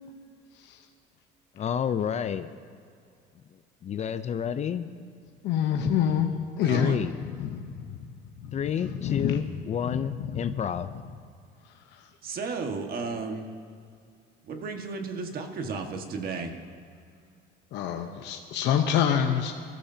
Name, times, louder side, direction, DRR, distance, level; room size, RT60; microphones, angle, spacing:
voice 1, 1.6-2.5 3.8-4.9 6.7-7.2 8.5-10.9, left 8 dB, 35° left, 11 dB, 0.5 m, -30 dB
voice 2, 5.4-6.3 6.6-6.9 7.4-7.6 8.4-8.5 8.8-9.4 9.9-10.0 10.3-10.4 17.7-19.5, left 9 dB, 70° left, 4 dB, 0.9 m, -26 dB
voice 3, 6.6-7.0 12.2-13.5 14.5-16.5, right 4 dB, 50° right, 4 dB, 1.6 m, -33 dB
22.5 x 13.5 x 2.8 m, 2.3 s
cardioid pair, 115°, 19 cm